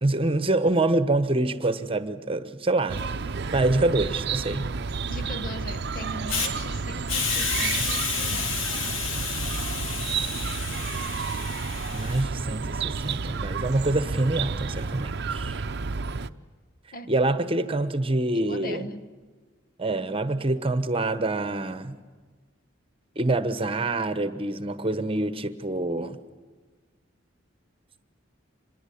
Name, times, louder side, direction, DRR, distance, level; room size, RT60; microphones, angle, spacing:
voice 1, 0.0-3.0 3.5-4.7 11.9-15.6 17.1-18.9 19.8-22.0 23.2-26.2, right 2 dB, 30° right, 1.1 m, -26 dB
Chirp tweet, 2.9-16.3, right 4 dB, 60° right, 0.7 m, -31 dB
voice 2, 5.1-8.9 16.9-17.1 18.3-19.0, equal, 50° left, 1.1 m, -39 dB
Hiss, 6.3-6.5 7.1-12.2, left 5 dB, 90° left, 2.2 m, -30 dB
25.5 x 22.0 x 8.5 m
head